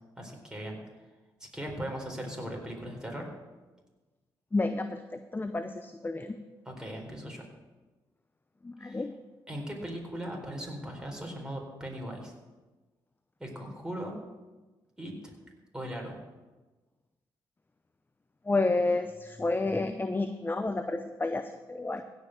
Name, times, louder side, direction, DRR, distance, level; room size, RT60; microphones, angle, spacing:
voice 1, 0.2-0.8 1.5-3.3 6.7-7.4 8.8-9.0 9.5-12.3 13.4-14.1 15.0-15.3 15.7-16.2, equal, 5° right, 0 dB, 4.1 m, -38 dB
voice 2, 4.5-6.4 8.6-9.1 18.5-22.0, left 2 dB, 20° left, 9 dB, 0.7 m, -30 dB
16.5 x 5.5 x 6.4 m, 1.2 s
hypercardioid pair, 50°, 10 cm